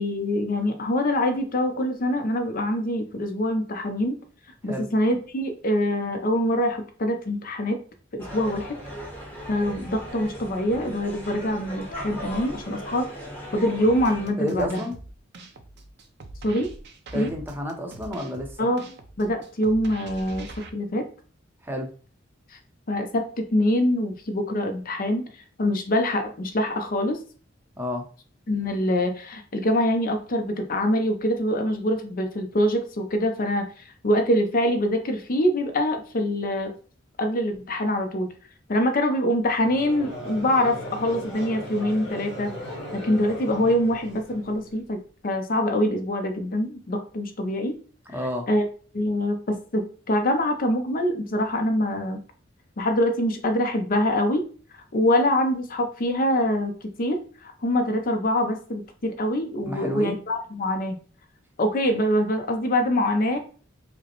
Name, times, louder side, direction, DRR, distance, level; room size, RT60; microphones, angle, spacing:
voice 1, 0.0-4.2 4.6-7.8 8.1-8.8 9.5-13.1 13.5-14.8 16.4-16.7 17.1-17.3 18.6-18.8 19.2-21.1 22.5-22.6 22.9-25.2 25.6-27.2 28.5-33.7 34.0-36.7 37.2-38.3 38.7-42.5 42.9-47.8 48.5-48.7 48.9-52.2 52.8-54.5 54.7-56.7 57.0-61.0 61.6-63.4, left 1 dB, 45° left, 5 dB, 0.6 m, -24 dB
sound 1, 8.2-14.3, equal, 10° left, 1.0 m, -38 dB
sound 2, 13.8-20.7, right 2 dB, 60° right, 0.5 m, -43 dB
voice 2, 14.4-15.0 17.1-18.7 21.6-21.9 27.8-28.0 48.1-48.5 59.6-60.2, left 1 dB, 10° right, 2 dB, 0.6 m, -30 dB
Conversation / Crowd, 39.5-44.8, equal, 30° left, 1.5 m, -37 dB
5.0 x 2.1 x 2.9 m, 0.40 s
head